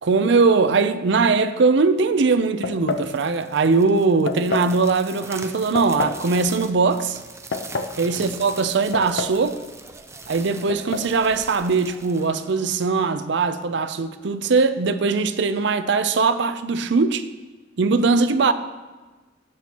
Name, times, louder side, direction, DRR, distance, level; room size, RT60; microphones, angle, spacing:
voice 1, 0.0-7.2 8.0-9.6 10.3-17.3 17.8-18.5, right 4 dB, 65° right, 0.5 m, -20 dB
sound 1, 2.6-3.1 4.3-4.7 5.8-6.2 7.3-8.0 8.9-9.5 9.7-9.8 10.7-11.1, left 3 dB, 70° left, 0.6 m, -28 dB
sound 2, 2.8-13.1, right 3 dB, 15° right, 0.6 m, -42 dB
17.0 x 6.1 x 2.9 m
head